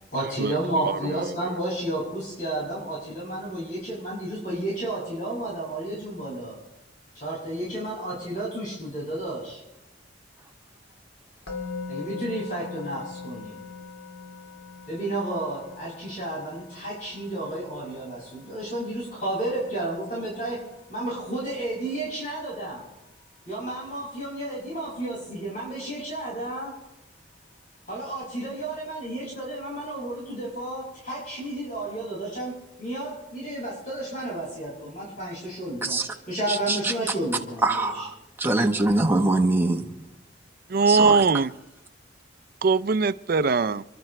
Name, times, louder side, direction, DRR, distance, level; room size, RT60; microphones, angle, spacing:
voice 1, 0.1-6.6 7.1-9.6 11.9-13.6 14.9-20.6 20.9-22.8 23.5-26.7 27.9-32.5 32.8-38.1, right 1 dB, 45° left, 6.3 m, -32 dB
Musical instrument, 11.5-22.6, left 4 dB, 80° left, 3.2 m, -42 dB
voice 2, 36.5-36.8 37.6-39.9 40.9-41.2, right 2 dB, 10° right, 1.1 m, -23 dB
voice 3, 40.7-41.5 42.6-43.8, right 4 dB, 50° right, 0.4 m, -21 dB
29.5 x 12.0 x 3.3 m
head